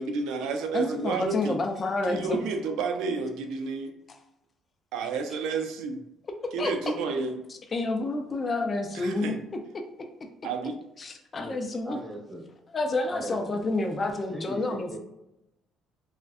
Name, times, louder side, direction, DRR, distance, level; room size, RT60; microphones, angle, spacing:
voice 1, 0.0-1.6 2.1-3.9 4.9-6.0 6.5-7.4 8.9-9.4 10.4-10.7, right 4 dB, 80° right, 5 dB, 0.3 m, -30 dB
voice 2, 0.7-2.4 6.6-6.7 7.7-9.3 9.7-9.8 11.0-12.0 12.7-15.0, left 2 dB, 35° left, 5 dB, 0.4 m, -29 dB
voice 3, 11.8-12.4 13.1-13.6 14.3-15.0, equal, 10° right, 0 dB, 0.6 m, -39 dB
2.4 x 2.1 x 2.4 m, 0.88 s
supercardioid pair, 80°, 0 cm